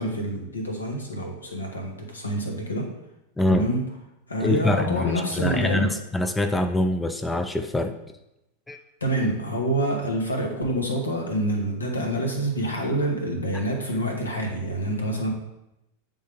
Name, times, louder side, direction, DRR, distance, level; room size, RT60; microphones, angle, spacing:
voice 1, 0.0-2.9 3.5-3.8 4.3-5.9 9.0-15.3, right 1 dB, 75° left, 2 dB, 1.2 m, -27 dB
voice 2, 3.4-3.7 4.4-8.0 8.7-8.8 13.5-13.6, left 1 dB, 10° left, 7 dB, 0.4 m, -24 dB
8.6 x 3.6 x 3.5 m, 0.89 s
figure-of-eight pair, 90°, 0 cm